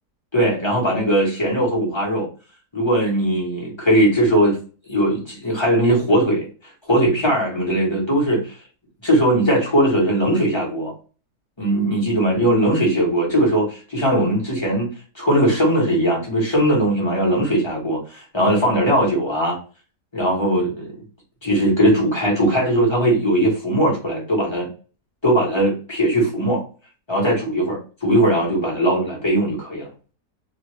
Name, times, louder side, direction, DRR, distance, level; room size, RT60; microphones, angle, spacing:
voice 1, 0.3-2.3 2.7-4.6 4.9-8.6 9.0-10.9 11.6-14.9 15.1-19.6 20.1-20.9 21.4-24.7 25.2-26.6 27.1-29.9, right 1 dB, 20° left, -4 dB, 1.1 m, -19 dB
3.0 x 2.5 x 3.1 m, 0.36 s
omnidirectional pair, 1.8 m